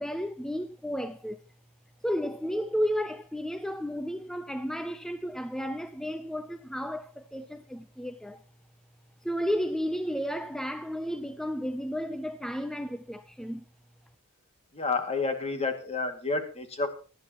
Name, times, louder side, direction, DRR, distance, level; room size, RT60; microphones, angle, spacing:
voice 1, 0.0-1.4 2.0-8.4 9.2-13.6, equal, ahead, 0.5 m, -33 dB
voice 2, 14.7-16.9, left 3 dB, 30° left, 2.2 m, -30 dB
18.5 x 13.0 x 2.9 m
head